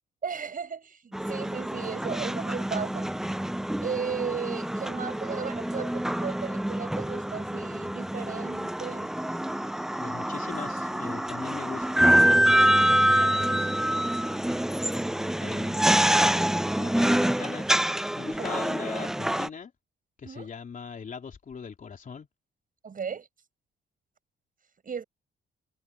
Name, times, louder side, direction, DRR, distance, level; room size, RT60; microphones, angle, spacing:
voice 1, 0.2-3.1 3.8-9.1 18.4-18.5 20.2-20.5 22.8-23.3 24.8-25.0, right 6 dB, 45° right, 7.8 m, -35 dB
sound 1, 1.1-19.5, right 1 dB, ahead, 0.3 m, -26 dB
voice 2, 10.0-13.7 15.1-15.9 16.8-17.8 18.2-19.7 20.2-22.3, left 6 dB, 40° left, 3.4 m, -40 dB
cardioid pair, 90°, 20 cm